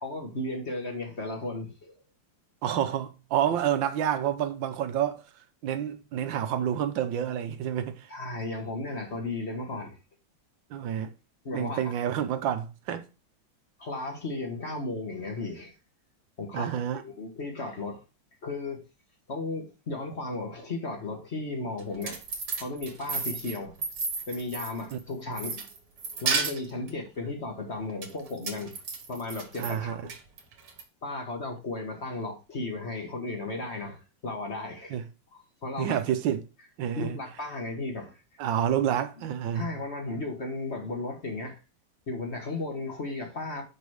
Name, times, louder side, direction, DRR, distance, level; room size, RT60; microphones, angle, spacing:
voice 1, 0.0-2.0 3.5-3.7 8.1-10.0 11.4-11.9 13.8-15.7 16.4-18.0 18.4-18.8 19.3-22.2 22.6-23.7 24.3-25.6 26.2-28.8 29.1-30.0 31.0-35.0 35.6-36.0 37.0-38.2 39.2-39.3 39.5-41.6 42.1-43.6, left 2 dB, 35° left, 1.6 m, -35 dB
voice 2, 2.6-5.2 5.6-8.1 10.7-11.1 11.5-13.0 16.5-17.0 24.9-25.0 29.6-30.0 34.9-35.0 35.8-36.4 36.8-37.2 38.4-39.7, right 10 dB, 80° right, 1.5 m, -28 dB
sound 1, 21.8-25.0 25.4-26.9 28.0-29.7 30.1-30.8, right 4 dB, 65° right, 1.9 m, -32 dB
5.4 x 5.2 x 6.2 m
omnidirectional pair, 2.1 m